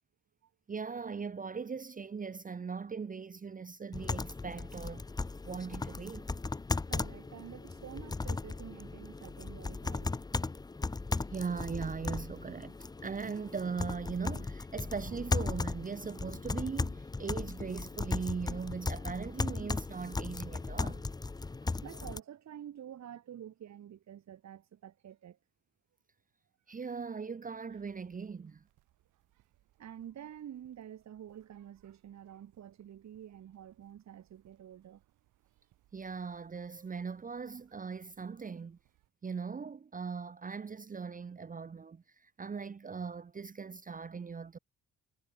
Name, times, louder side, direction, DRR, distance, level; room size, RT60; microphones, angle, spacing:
voice 1, 0.7-5.1 5.4-6.3 11.3-12.8 13.0-21.0 26.7-28.6 35.9-38.8 39.2-44.6, right 5 dB, 25° right, 0.9 m, -39 dB
sound 1, 3.9-22.2, left 3 dB, 15° left, 0.6 m, -37 dB
voice 2, 6.9-10.1 21.8-25.4 29.8-35.0, right 10 dB, 65° right, 3.7 m, -48 dB
sound 2, 27.7-39.1, right 16 dB, 90° right, 4.4 m, -72 dB
cardioid pair, 90°, 30 cm